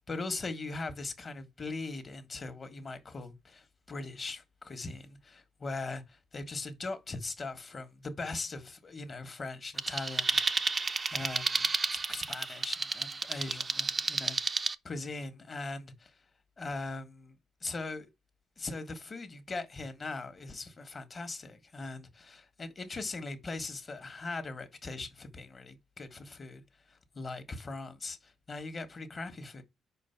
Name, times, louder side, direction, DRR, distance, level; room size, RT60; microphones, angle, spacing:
voice 1, 0.1-10.4 11.1-14.4 14.8-16.2 16.6-17.3 17.6-18.1 18.6-26.6 26.9-29.6, left 3 dB, 35° left, 1.4 m, -40 dB
sound 1, 9.8-14.7, right 4 dB, 30° right, 0.5 m, -31 dB
5.2 x 4.5 x 5.7 m
cardioid pair, 90°, 0 cm